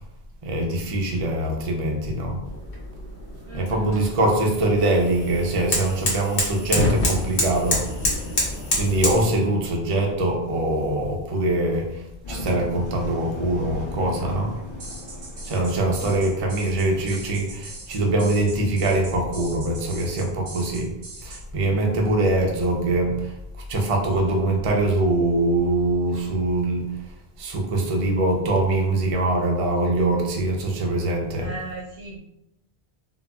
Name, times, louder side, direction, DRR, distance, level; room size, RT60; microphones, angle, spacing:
voice 1, 0.4-2.4 3.5-7.9 8.8-14.5 15.4-20.9 21.2-23.3 23.7-26.8 27.4-31.5, right 2 dB, 45° right, 0 dB, 0.5 m, -23 dB
sound 1, 2.5-9.2, left 1 dB, 65° left, 1.0 m, -27 dB
voice 2, 3.5-3.9 9.2-9.4 24.2-24.4 31.4-32.2, right 2 dB, 85° right, -3 dB, 1.1 m, -37 dB
Engine, 12.2-18.1, left 2 dB, 30° left, 0.6 m, -37 dB
sound 2, 14.8-21.4, right 3 dB, 60° right, 0.8 m, -41 dB
3.8 x 2.0 x 2.2 m, 0.86 s
omnidirectional pair, 1.0 m